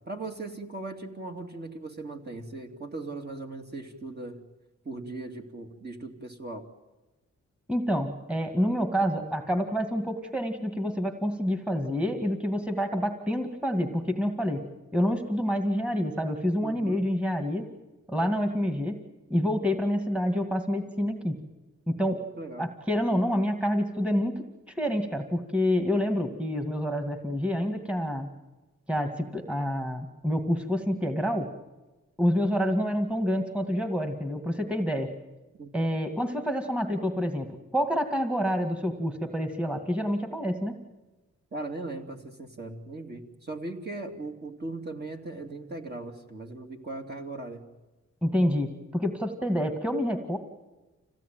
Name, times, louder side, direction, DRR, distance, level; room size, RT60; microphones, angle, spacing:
voice 1, 0.1-4.4 4.8-6.6 16.6-17.0 22.2-22.7 35.6-35.7 41.5-47.7, right 2 dB, 35° right, 3 dB, 2.8 m, -38 dB
voice 2, 7.7-14.6 14.9-17.7 18.1-19.0 19.3-21.4 21.9-22.3 22.6-24.4 24.8-28.3 28.9-31.5 32.2-35.1 35.7-40.8 48.2-50.4, equal, 5° right, 6 dB, 2.1 m, -27 dB
26.5 x 17.0 x 9.3 m, 1.1 s
cardioid pair, 90°, 29 cm